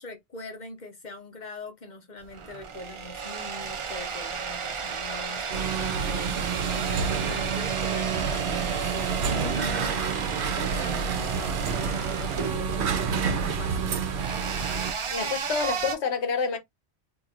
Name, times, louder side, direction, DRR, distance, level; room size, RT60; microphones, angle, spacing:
voice 1, 0.0-14.4, left 2 dB, 45° left, 0.8 m, -42 dB
sound 1, 2.2-15.9, right 6 dB, 45° right, 0.4 m, -33 dB
sound 2, 5.5-14.9, right 6 dB, 80° right, 1.0 m, -29 dB
voice 2, 15.1-16.6, left 6 dB, 85° left, 1.1 m, -28 dB
4.3 x 2.7 x 2.4 m
omnidirectional pair, 1.1 m